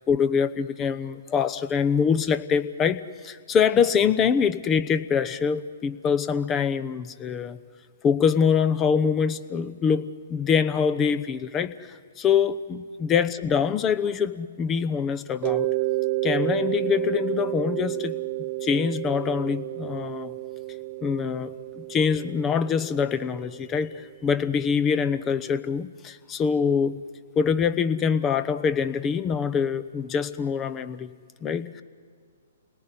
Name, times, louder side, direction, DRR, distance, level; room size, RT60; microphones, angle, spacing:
voice 1, 0.0-7.6 8.0-15.7 16.2-20.4 21.0-27.0 27.4-31.1 31.4-31.8, left 6 dB, 20° left, 13 dB, 0.9 m, -24 dB
Mallet percussion, 15.4-24.0, right 18 dB, 40° right, 0.9 m, -30 dB
28.5 x 19.0 x 9.9 m, 2.1 s
hypercardioid pair, 130°, 0 cm